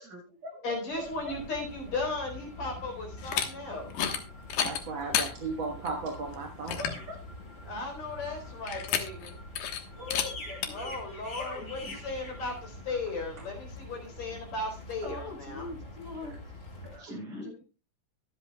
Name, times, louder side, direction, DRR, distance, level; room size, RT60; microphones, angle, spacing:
voice 1, 0.0-1.4 3.7-4.2 6.8-7.1 9.9-10.9 11.3-12.0 15.0-16.5 16.8-17.6, left 2 dB, 70° right, -1 dB, 8.9 m, -42 dB
voice 2, 0.6-3.9 7.6-9.4 10.7-15.7, left 3 dB, 60° left, 2 dB, 5.2 m, -36 dB
sound 1, 0.9-17.0, left 1 dB, 35° left, 5.6 m, -45 dB
sound 2, 3.2-3.5 3.9-4.2 4.5-5.3 5.9-6.0 6.3-6.4 6.7-7.0 8.7-9.3 9.6-9.8 10.1-10.3 10.6-10.7, left 9 dB, 90° left, 3.0 m, -30 dB
voice 3, 4.6-6.8 16.2-16.4, right 4 dB, 45° right, 0 dB, 1.8 m, -35 dB
23.0 x 8.0 x 2.3 m, 0.32 s
omnidirectional pair, 3.6 m